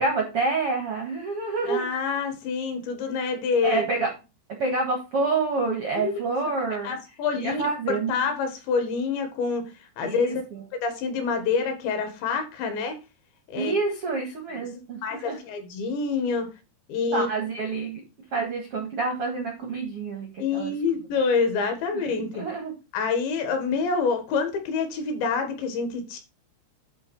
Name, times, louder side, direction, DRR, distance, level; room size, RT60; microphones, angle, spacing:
voice 1, 0.0-1.9 3.6-4.1 4.6-7.0 7.4-8.2 10.0-10.6 13.5-15.4 17.1-18.0 18.3-20.7 21.9-22.7, right 3 dB, 90° right, 1 dB, 1.2 m, -28 dB
voice 2, 1.7-3.9 6.0-6.1 6.8-9.7 10.0-10.4 10.8-13.0 13.5-13.7 15.0-16.5 16.9-17.3 20.4-22.4 22.9-26.2, left 5 dB, 70° left, 6 dB, 3.7 m, -27 dB
11.0 x 3.8 x 5.3 m, 0.28 s
omnidirectional pair, 5.7 m